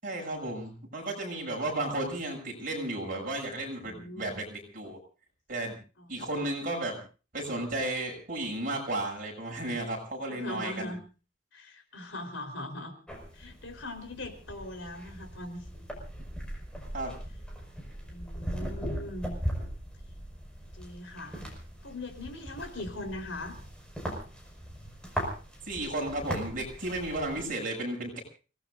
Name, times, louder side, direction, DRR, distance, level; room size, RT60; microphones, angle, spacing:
voice 1, 0.0-5.0 5.5-5.8 6.1-7.0 7.3-10.9 16.9-17.1 25.7-28.2, right 1 dB, 45° right, 1 dB, 7.5 m, -33 dB
voice 2, 3.8-4.4 6.0-6.1 6.4-6.5 10.3-11.0 11.5-12.9 13.3-15.9 18.1-19.4 20.7-21.4 21.8-23.6, left 1 dB, 80° left, 5 dB, 4.2 m, -40 dB
sound 1, 13.1-27.4, equal, 5° left, 5.5 m, -39 dB
29.5 x 18.5 x 2.6 m, 0.36 s
head